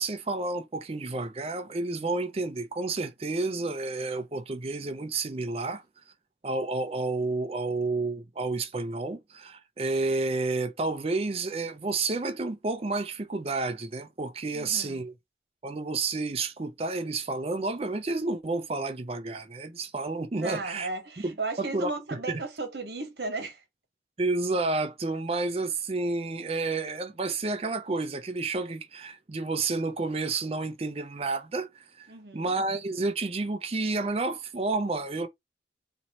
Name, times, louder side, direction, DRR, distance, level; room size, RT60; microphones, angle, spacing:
voice 1, 0.0-5.8 6.4-15.1 15.6-20.9 21.2-22.4 24.2-32.1 32.3-35.3, right 3 dB, 35° right, 0.4 m, -30 dB
voice 2, 14.5-15.0 20.3-23.6 32.1-32.5, right 3 dB, 65° right, 1.1 m, -35 dB
3.0 x 2.7 x 4.1 m
head